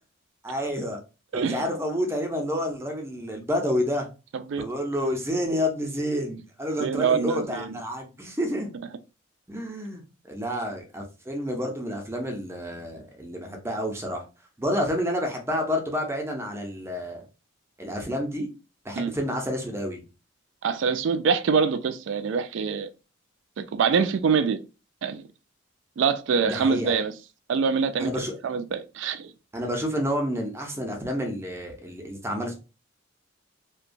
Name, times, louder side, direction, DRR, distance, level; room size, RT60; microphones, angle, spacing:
voice 1, 0.4-1.0 1.3-4.1 4.6-8.7 9.5-10.0 10.3-14.2 14.6-17.2 17.8-18.5 18.8-20.0 26.4-27.0 28.0-28.4 29.5-32.6, equal, 15° right, 0.5 m, -29 dB
voice 2, 1.3-1.6 4.3-4.6 6.8-7.8 19.0-19.1 20.6-22.9 23.6-24.6 25.0-25.2 26.0-27.1 27.5-28.1 28.4-29.3, right 5 dB, 65° right, 0.3 m, -24 dB
2.8 x 2.1 x 2.5 m
head